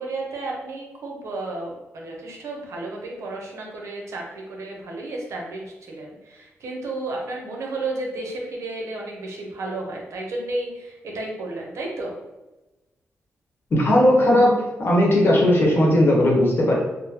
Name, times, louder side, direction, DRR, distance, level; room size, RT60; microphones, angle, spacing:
voice 1, 0.0-12.2, right 2 dB, 80° right, -1 dB, 0.8 m, -32 dB
voice 2, 13.7-16.7, left 1 dB, 50° left, -2 dB, 1.0 m, -17 dB
3.7 x 2.1 x 2.9 m, 1.1 s
cardioid pair, 75°, 5 cm